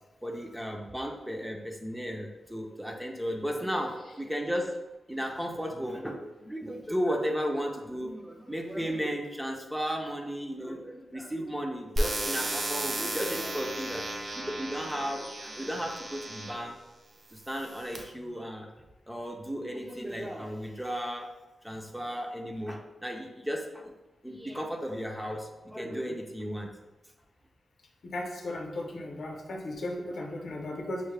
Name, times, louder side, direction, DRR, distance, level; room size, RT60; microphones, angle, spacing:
voice 1, 0.2-4.7 5.1-14.0 14.3-16.7 17.3-18.7 19.1-21.3 21.6-23.9 24.2-26.7, equal, 5° right, 2 dB, 0.4 m, -34 dB
sound 1, 12.0-16.7 17.4-18.0, right 1 dB, 55° right, 0.5 m, -34 dB
voice 2, 28.1-31.0, left 1 dB, 65° left, 0 dB, 0.7 m, -36 dB
5.4 x 2.1 x 3.2 m, 1.1 s
wide cardioid pair, 130°, 0 cm